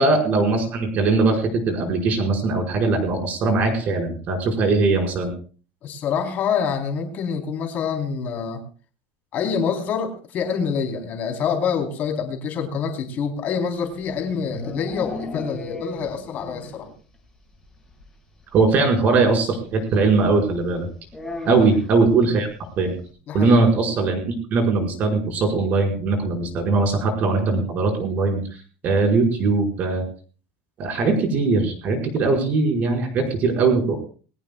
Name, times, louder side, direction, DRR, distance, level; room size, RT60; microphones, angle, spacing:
voice 1, 0.0-5.3 18.5-20.9 21.5-22.5 22.8-22.9 23.3-24.2 24.5-28.4 28.8-30.0 30.8-34.0, right 3 dB, 30° right, 2 dB, 5.4 m, -20 dB
voice 2, 5.8-8.6 9.3-16.9 21.4-21.7 23.3-23.6, left 6 dB, 30° left, 3 dB, 3.8 m, -26 dB
sound 1, 13.8-16.9 17.1-17.2 17.5-17.6 17.9-18.0 19.3-19.4 21.1-21.9, left 2 dB, 5° left, 6.1 m, -35 dB
22.0 x 17.5 x 2.4 m, 0.39 s
cardioid pair, 175°, 5 cm